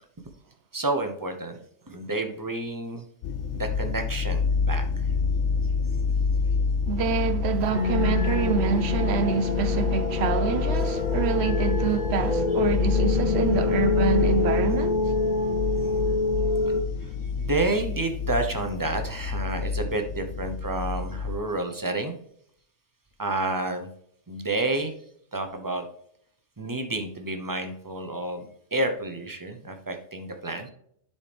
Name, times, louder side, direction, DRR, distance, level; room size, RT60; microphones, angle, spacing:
voice 1, 0.7-1.6 1.9-3.1 3.5-5.1 17.0-22.1 23.2-23.9 24.3-24.9 25.3-25.8 26.6-30.7, right 2 dB, 20° right, 0.6 m, -30 dB
sound 1, 3.2-21.4, left 5 dB, 70° left, 0.9 m, -28 dB
voice 2, 6.9-15.0, right 6 dB, 65° right, 0.8 m, -27 dB
sound 2, 7.7-16.8, left 3 dB, 40° left, 0.8 m, -26 dB
10.5 x 4.2 x 3.4 m
omnidirectional pair, 1.3 m